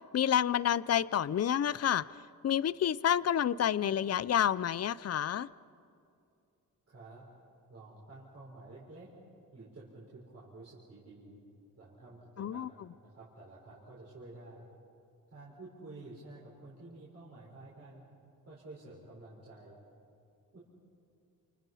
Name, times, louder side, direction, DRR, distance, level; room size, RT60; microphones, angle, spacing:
voice 1, 0.1-2.1 2.4-5.5 12.4-12.7, left 9 dB, 45° left, 19 dB, 0.6 m, -29 dB
voice 2, 6.9-7.2 7.7-9.1 9.5-11.4 11.8-14.6 15.3-18.0 18.5-19.8 20.5-20.6, right 2 dB, 45° right, -6 dB, 5.6 m, -51 dB
29.5 x 29.0 x 5.7 m, 2.5 s
wide cardioid pair, 110°, 36 cm